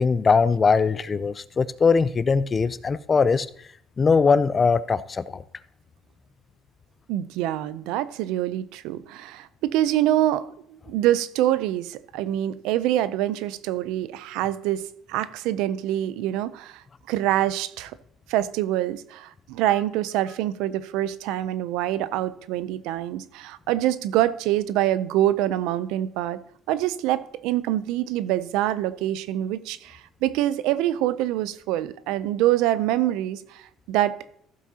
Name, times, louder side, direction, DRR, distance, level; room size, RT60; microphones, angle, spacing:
voice 1, 0.0-3.5 4.0-5.4, left 5 dB, 30° left, 16 dB, 0.4 m, -21 dB
voice 2, 7.1-17.9 18.3-26.4 26.7-34.3, right 13 dB, 90° right, 16 dB, 0.5 m, -25 dB
15.0 x 7.4 x 2.8 m, 0.67 s
cardioid pair, 110°, 0 cm